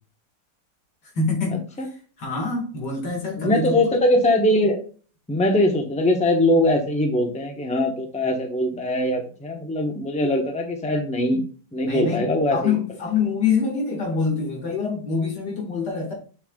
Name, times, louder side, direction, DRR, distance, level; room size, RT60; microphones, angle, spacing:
voice 1, 1.1-1.7 2.2-3.8 11.8-16.1, left 5 dB, 90° left, 2.7 m, -25 dB
voice 2, 3.4-4.8 5.3-11.4 11.7-12.7, left 1 dB, 5° left, 0.9 m, -21 dB
7.0 x 6.7 x 2.4 m
omnidirectional pair, 1.8 m